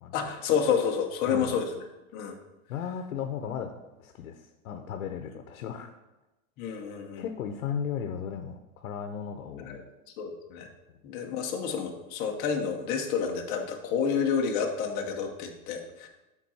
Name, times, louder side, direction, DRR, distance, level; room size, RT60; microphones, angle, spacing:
voice 1, 0.1-1.8 2.1-2.3 6.6-7.3 9.6-9.8 10.2-10.7 11.0-16.1, left 6 dB, 25° left, 2 dB, 0.7 m, -29 dB
voice 2, 2.7-3.7 4.0-5.9 7.2-9.8 10.9-11.0, left 7 dB, 70° left, 6 dB, 0.8 m, -36 dB
7.4 x 3.7 x 5.5 m, 1.0 s
supercardioid pair, 160°, 41 cm